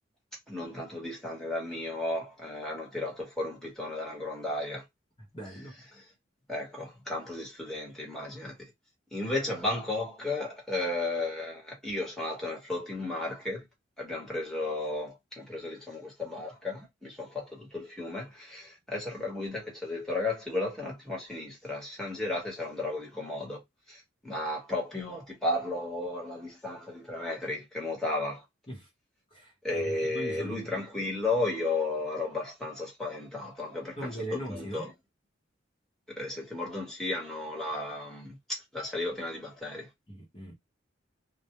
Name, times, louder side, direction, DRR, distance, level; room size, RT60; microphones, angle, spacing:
voice 1, 0.5-4.8 5.9-6.0 6.5-8.7 9.1-13.7 14.0-23.6 23.9-28.4 29.6-34.9 36.1-39.9, left 2 dB, ahead, 1.1 m, -34 dB
voice 2, 5.2-5.7 28.7-28.9 29.3-30.8 34.0-34.9 40.1-40.5, right 1 dB, 30° left, 0.9 m, -40 dB
2.2 x 2.2 x 2.9 m
head